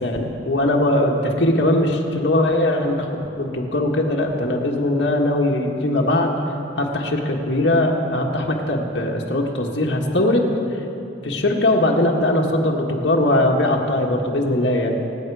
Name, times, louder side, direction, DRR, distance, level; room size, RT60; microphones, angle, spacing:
voice 1, 0.0-6.3 6.8-10.5 11.2-15.0, left 1 dB, 65° left, 0 dB, 1.6 m, -20 dB
25.5 x 9.1 x 4.8 m, 2.9 s
head